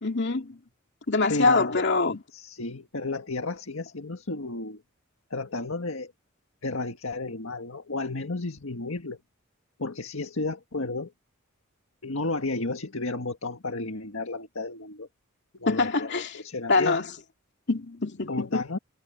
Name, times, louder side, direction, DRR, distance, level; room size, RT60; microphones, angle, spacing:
voice 1, 0.0-0.6 1.1-2.2 15.7-16.4 16.7-17.1 17.7-18.6, left 3 dB, 55° left, 2.5 m, -24 dB
voice 2, 1.3-1.9 2.3-4.8 5.3-6.1 6.6-9.2 9.8-11.1 12.0-15.1 15.6-17.0 18.3-18.8, left 3 dB, 75° left, 1.8 m, -32 dB
head